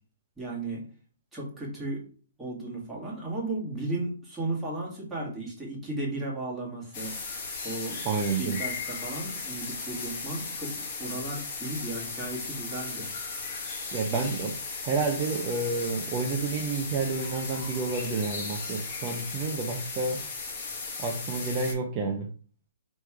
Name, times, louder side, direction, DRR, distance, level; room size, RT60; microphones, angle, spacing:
voice 1, 0.4-0.8 1.3-2.1 2.4-7.1 7.6-8.0 8.3-13.1, right 2 dB, 5° right, -5 dB, 1.7 m, -35 dB
sound 1, 6.9-21.7, left 4 dB, 35° left, 1.6 m, -36 dB
voice 2, 8.0-8.6 13.9-14.5 14.8-20.2 21.0-22.3, right 4 dB, 25° right, 2 dB, 0.6 m, -30 dB
3.3 x 3.1 x 4.6 m, 0.42 s
hypercardioid pair, 150°, 0 cm